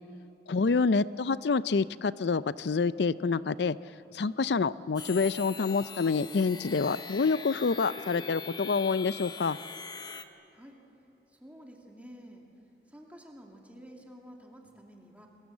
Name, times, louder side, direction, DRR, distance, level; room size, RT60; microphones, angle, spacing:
voice 1, 0.5-3.8 4.1-9.6, left 4 dB, 65° left, 17 dB, 0.5 m, -27 dB
sound 1, 5.0-10.2, left 5 dB, 25° left, 0.9 m, -42 dB
voice 2, 11.3-12.5 12.9-15.3, equal, 10° right, 0 dB, 2.4 m, -50 dB
27.5 x 21.5 x 7.3 m, 2.9 s
head